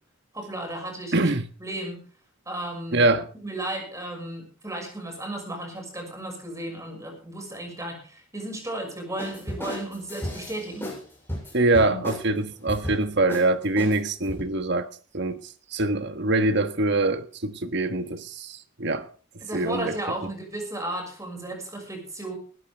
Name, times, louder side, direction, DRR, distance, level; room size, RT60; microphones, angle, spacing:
voice 1, 0.3-1.3 1.6-2.0 2.5-3.1 3.4-10.9 11.8-12.0 19.4-22.3, right 1 dB, 15° right, 6.2 m, -34 dB
voice 2, 1.1-1.5 2.9-3.3 11.5-14.9 15.1-15.4 15.7-19.1 19.5-19.9, right 2 dB, 55° right, 1.4 m, -24 dB
sound 1, 9.2-11.0 11.3-12.3 12.7-13.0 13.3-13.5 13.8-14.4, left 1 dB, 10° left, 6.9 m, -34 dB
19.5 x 14.0 x 3.5 m
head